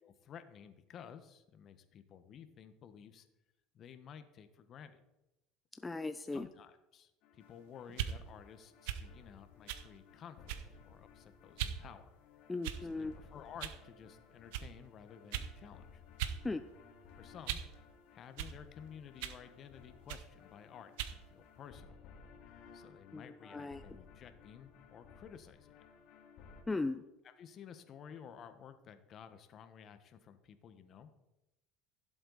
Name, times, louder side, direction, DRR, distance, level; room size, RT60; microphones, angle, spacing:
voice 1, 0.0-3.3 3.7-5.0 6.2-12.1 12.8-16.0 17.2-17.6 18.1-22.0 22.7-25.7 27.2-31.1, left 8 dB, 45° left, 10 dB, 1.2 m, -53 dB
voice 2, 5.8-6.4 12.5-13.1 16.4-16.6 23.1-23.2 23.5-23.8 26.7-27.0, left 3 dB, 15° left, 9 dB, 0.5 m, -37 dB
sound 1, 7.2-26.6, left 6 dB, 60° left, 2.2 m, -59 dB
sound 2, 7.9-8.2 8.8-9.1 9.7-9.9 10.5-10.8 11.6-11.8 12.6-13.0 13.6-13.8 14.5-14.7 15.3-15.5 16.2-16.4 16.7-17.7 18.4-18.6 19.2-19.4 20.1-20.3 21.0-21.2, right 10 dB, 80° right, 0.9 m, -39 dB
16.0 x 7.8 x 4.1 m, 0.94 s
supercardioid pair, 100°, 0 cm